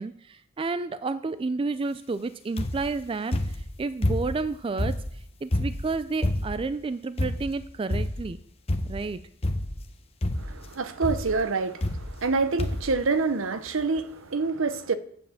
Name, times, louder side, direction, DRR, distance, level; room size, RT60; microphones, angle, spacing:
voice 1, 0.0-8.4 8.8-9.2, right 3 dB, 25° right, 0.3 m, -31 dB
sound 1, 2.6-2.9 3.3-4.5 4.8-6.7 7.2-7.6 7.9-8.3 8.7-9.1 9.4-9.9 10.2-10.6 11.0-11.3 11.8-12.3 12.6-13.0 13.7-13.8 14.0-14.1, left 1 dB, 30° left, 0.8 m, -28 dB
voice 2, 10.4-15.0, right 4 dB, 75° right, 0.8 m, -27 dB
8.5 x 7.2 x 7.1 m
head